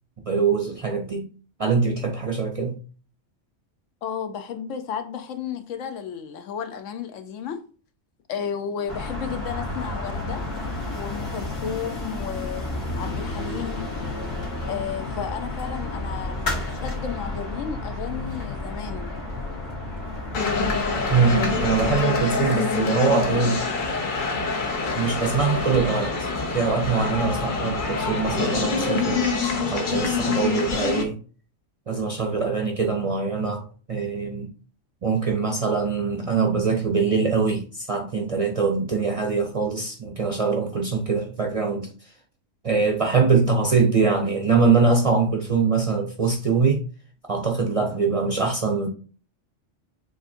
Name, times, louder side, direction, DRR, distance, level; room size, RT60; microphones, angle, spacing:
voice 1, 0.3-1.3 1.6-2.8 21.1-23.6 25.0-31.2 31.9-33.6 33.9-34.5 35.0-42.1 42.6-46.8 47.3-48.9, right 4 dB, 45° right, 0.5 m, -23 dB
voice 2, 4.0-7.6 8.3-10.4 10.9-13.8 14.6-19.1, left 7 dB, 85° left, 1.0 m, -33 dB
sound 1, 8.9-22.0, left 2 dB, 65° left, 1.6 m, -31 dB
sound 2, 20.3-31.0, left 4 dB, 45° left, 0.8 m, -25 dB
7.1 x 2.6 x 2.6 m
omnidirectional pair, 1.3 m